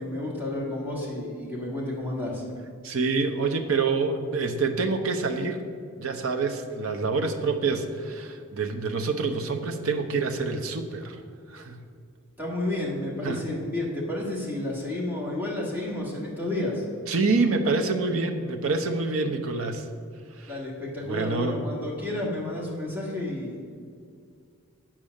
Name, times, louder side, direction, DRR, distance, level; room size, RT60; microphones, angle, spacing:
voice 1, 0.0-2.4 12.4-16.9 20.5-23.6, left 1 dB, 10° right, -4 dB, 1.9 m, -31 dB
voice 2, 2.8-5.7 6.0-11.2 11.5-11.8 13.2-13.4 17.1-19.8 20.4-20.6 21.1-21.5, right 4 dB, 70° right, 5 dB, 0.8 m, -27 dB
8.7 x 6.1 x 6.5 m, 2.3 s
head